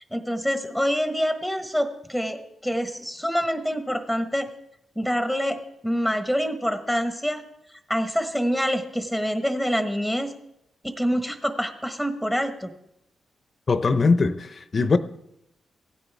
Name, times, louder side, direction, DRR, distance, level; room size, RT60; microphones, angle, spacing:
voice 1, 0.1-2.4 2.6-4.5 4.9-5.6 5.8-7.4 7.9-10.3 10.8-12.7, equal, 5° right, 1.3 m, -26 dB
voice 2, 13.7-15.0, left 4 dB, 50° left, 0.7 m, -21 dB
16.0 x 9.3 x 3.5 m
supercardioid pair, 50°, 0 cm